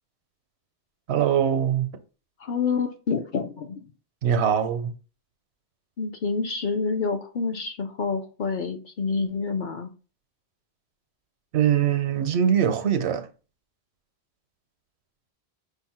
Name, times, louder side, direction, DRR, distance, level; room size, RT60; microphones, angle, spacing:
voice 1, 1.1-1.9 4.2-4.9 11.5-13.3, right 9 dB, 80° right, 0.9 m, -22 dB
voice 2, 2.4-3.8 6.0-9.9, left 5 dB, 55° left, 0.6 m, -28 dB
5.4 x 2.1 x 4.2 m
omnidirectional pair, 1.1 m